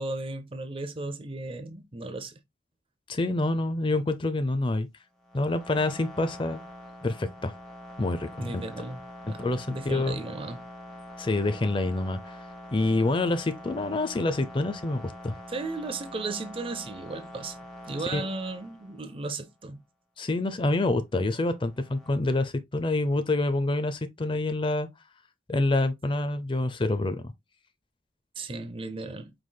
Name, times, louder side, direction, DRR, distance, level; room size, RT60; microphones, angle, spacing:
voice 1, 0.0-2.4 8.4-9.0 9.3-10.6 15.5-17.6 17.9-19.8 28.4-29.3, right 3 dB, 30° right, 0.6 m, -35 dB
voice 2, 3.1-4.9 5.3-6.6 7.0-7.5 8.0-8.5 9.4-10.2 11.2-12.4 12.7-15.4 18.1-18.3 20.2-24.9 25.5-27.2, left 2 dB, 30° left, 0.5 m, -27 dB
sound 1, 5.2-19.3 21.5-22.1, left 1 dB, 5° left, 1.3 m, -45 dB
4.8 x 3.8 x 2.2 m
head